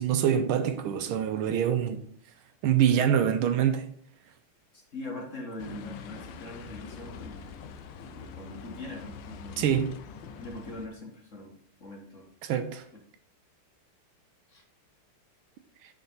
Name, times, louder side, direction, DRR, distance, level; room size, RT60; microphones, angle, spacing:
voice 1, 0.0-2.0 2.6-3.9 9.6-9.9 12.4-12.8, right 9 dB, 80° right, 1.5 m, -25 dB
voice 2, 4.7-7.6 8.0-9.8 10.4-12.3 12.9-13.0 14.5-14.6, left 2 dB, 40° left, 1.6 m, -42 dB
sound 1, 5.6-10.9, left 6 dB, 70° left, 1.2 m, -44 dB
6.6 x 4.5 x 5.4 m
omnidirectional pair, 2.4 m